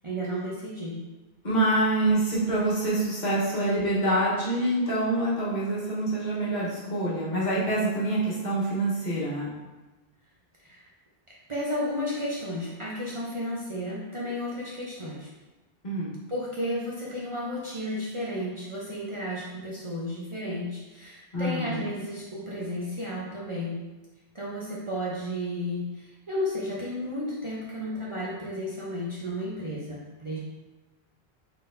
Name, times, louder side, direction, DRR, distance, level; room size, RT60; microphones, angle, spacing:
voice 1, 0.0-1.0 10.6-10.8 11.5-15.3 16.3-23.8 24.3-30.4, left 1 dB, 35° right, -6 dB, 0.7 m, -33 dB
voice 2, 1.4-9.5 15.8-16.1 21.3-21.9, right 1 dB, 45° left, -8 dB, 1.3 m, -26 dB
4.1 x 3.8 x 2.6 m, 1.1 s
omnidirectional pair, 1.0 m